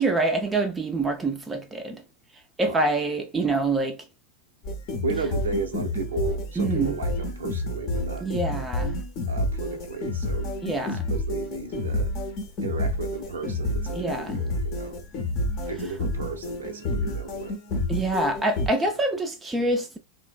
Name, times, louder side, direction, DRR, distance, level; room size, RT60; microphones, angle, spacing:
voice 1, 0.0-2.0 2.6-4.0 6.6-7.0 8.2-9.0 10.6-11.1 13.9-14.4 17.9-20.0, right 2 dB, 10° right, 0.4 m, -26 dB
sound 1, 4.6-18.7, left 1 dB, 40° left, 0.7 m, -29 dB
voice 2, 5.0-8.3 9.3-12.1 12.6-15.0 15.6-17.6 18.9-19.0, right 4 dB, 70° right, 0.5 m, -34 dB
3.1 x 2.0 x 2.2 m
figure-of-eight pair, 90°, 0 cm